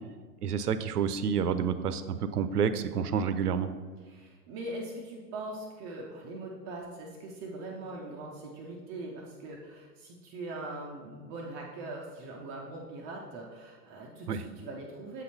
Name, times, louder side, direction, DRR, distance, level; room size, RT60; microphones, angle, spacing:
voice 1, 0.4-3.7 14.3-14.4, right 7 dB, 70° right, 12 dB, 0.6 m, -29 dB
voice 2, 4.1-15.2, right 2 dB, 20° right, -1 dB, 0.4 m, -41 dB
7.3 x 4.1 x 4.1 m, 1.5 s
figure-of-eight pair, 95°, 48 cm